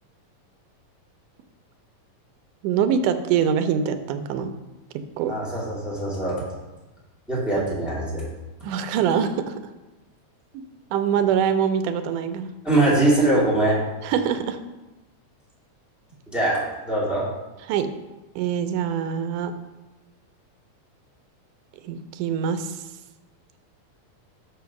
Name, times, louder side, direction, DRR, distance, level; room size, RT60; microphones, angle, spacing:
voice 1, 2.6-4.5 5.2-5.3 7.6-7.7 8.6-9.5 10.9-12.5 14.0-14.6 17.7-17.9 18.4-19.5 21.8-22.8, right 8 dB, 85° right, 9 dB, 2.1 m, -24 dB
voice 2, 5.3-6.4 7.3-8.2 12.6-13.8 16.3-16.6 16.8-17.2, right 2 dB, ahead, -7 dB, 1.6 m, -22 dB
6.3 x 5.1 x 5.8 m, 1.1 s
omnidirectional pair, 3.6 m